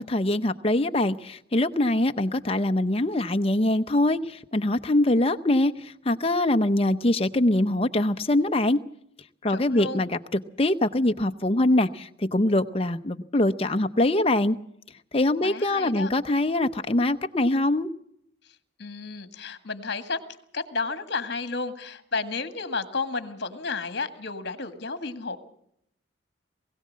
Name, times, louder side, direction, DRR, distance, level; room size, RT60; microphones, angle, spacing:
voice 1, 0.0-8.8 9.4-10.2 10.6-14.6 15.1-17.9, left 1 dB, 30° left, 8 dB, 0.7 m, -23 dB
voice 2, 9.5-10.1 15.4-16.1 18.4-20.2 20.5-25.4, left 4 dB, 55° left, 10 dB, 1.7 m, -32 dB
21.5 x 16.5 x 7.5 m, 0.72 s
head